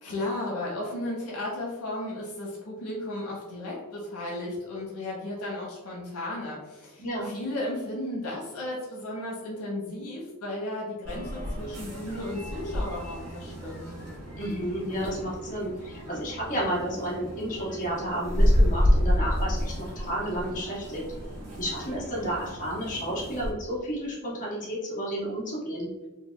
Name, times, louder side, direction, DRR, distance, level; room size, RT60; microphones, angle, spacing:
voice 1, 0.0-13.8, left 1 dB, 90° left, -4 dB, 1.0 m, -34 dB
voice 2, 7.0-7.3 14.4-21.0 21.6-25.9, right 1 dB, 35° left, -7 dB, 1.3 m, -31 dB
sound 1, 11.0-23.5, equal, 80° right, 1.2 m, -29 dB
3.3 x 2.1 x 3.2 m, 1.1 s
head